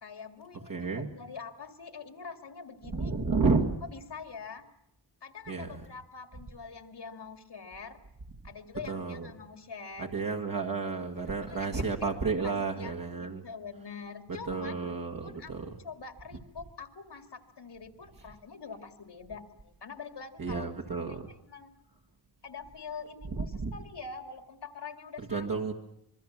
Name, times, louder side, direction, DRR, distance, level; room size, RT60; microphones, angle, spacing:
voice 1, 0.0-3.1 3.8-4.6 5.2-8.0 8.4-10.3 11.5-12.0 12.4-12.9 13.2-14.7 15.2-20.7 21.1-21.7 22.4-25.6, left 5 dB, 75° left, 7 dB, 2.4 m, -45 dB
voice 2, 0.7-1.1 2.9-3.8 5.5-5.8 8.9-9.3 10.0-13.4 14.5-15.7 20.4-21.3 23.4-23.7 25.3-25.7, right 4 dB, 50° right, 0 dB, 1.8 m, -31 dB
25.5 x 22.5 x 7.4 m, 0.81 s
wide cardioid pair, 120°, 41 cm